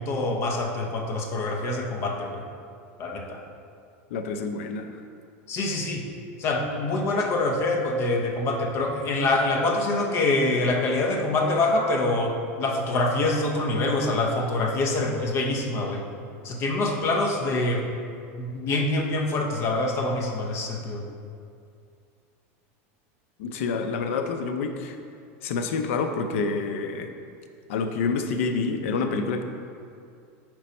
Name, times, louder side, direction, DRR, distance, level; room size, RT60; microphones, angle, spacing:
voice 1, 0.0-2.4 3.0-3.4 5.5-6.0 6.4-16.0 16.4-17.8 18.4-21.0, left 2 dB, 40° left, 2 dB, 0.7 m, -25 dB
voice 2, 4.1-4.9 23.4-25.0 25.4-27.1 27.7-29.4, left 4 dB, 80° left, 6 dB, 0.5 m, -27 dB
5.1 x 4.6 x 4.2 m, 2.4 s
supercardioid pair, 140°, 7 cm